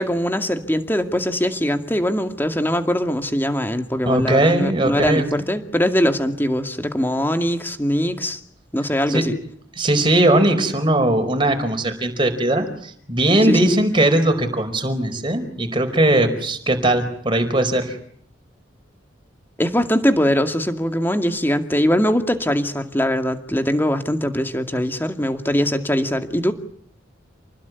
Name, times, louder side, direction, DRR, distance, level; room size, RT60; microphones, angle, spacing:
voice 1, 0.0-8.4 8.7-9.4 13.4-13.7 19.6-26.5, equal, 10° left, 7 dB, 2.2 m, -21 dB
voice 2, 4.0-5.4 9.1-9.3 9.8-18.0, right 1 dB, 25° right, 5 dB, 4.8 m, -19 dB
29.0 x 20.5 x 9.6 m, 0.63 s
head